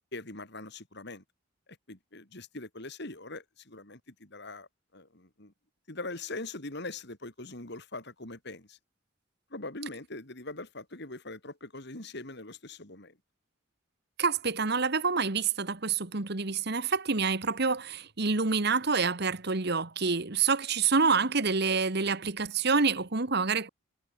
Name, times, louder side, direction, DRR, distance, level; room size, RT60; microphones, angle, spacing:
voice 1, 0.1-1.2 1.9-5.5 5.9-8.8 9.5-13.2, left 2 dB, 55° left, 4.2 m, -42 dB
voice 2, 14.2-23.7, right 4 dB, 55° right, 1.6 m, -27 dB
head